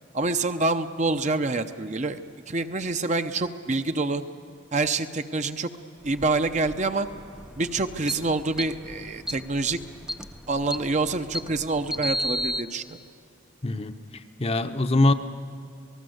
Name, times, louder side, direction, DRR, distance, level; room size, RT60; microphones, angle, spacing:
voice 1, 0.1-2.2 2.5-4.2 4.7-5.7 6.0-7.1 7.6-9.8 10.5-13.0, right 3 dB, 35° right, 8 dB, 0.8 m, -26 dB
sound 1, 6.0-12.6, equal, 5° right, 0.5 m, -34 dB
voice 2, 13.6-13.9 14.4-15.1, left 2 dB, 30° left, 8 dB, 0.8 m, -22 dB
27.0 x 19.0 x 7.9 m, 2.7 s
head